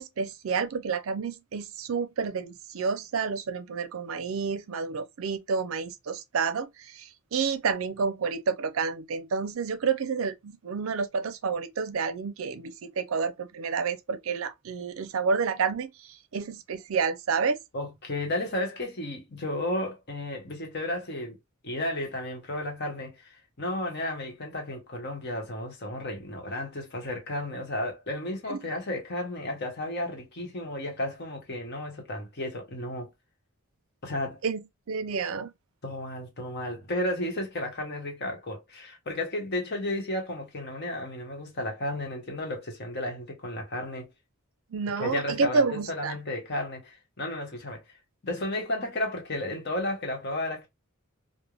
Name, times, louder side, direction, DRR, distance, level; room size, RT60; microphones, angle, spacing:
voice 1, 0.0-17.6 28.5-28.6 34.4-35.5 44.7-46.2, right 5 dB, 75° right, 0.5 m, -29 dB
voice 2, 17.7-21.4 21.6-33.1 34.0-34.4 35.8-44.1 45.0-47.8 48.2-50.7, left 1 dB, 50° left, 1.0 m, -33 dB
3.2 x 2.1 x 2.3 m
head